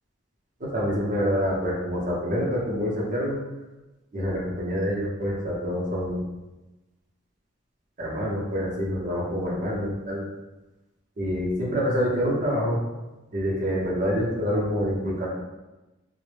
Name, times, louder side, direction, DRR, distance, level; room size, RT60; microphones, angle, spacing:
voice 1, 0.6-3.4 4.1-6.2 8.0-10.2 11.2-12.8 13.3-15.3, equal, 40° right, -4 dB, 0.6 m, -26 dB
2.0 x 2.0 x 3.1 m, 1.1 s
head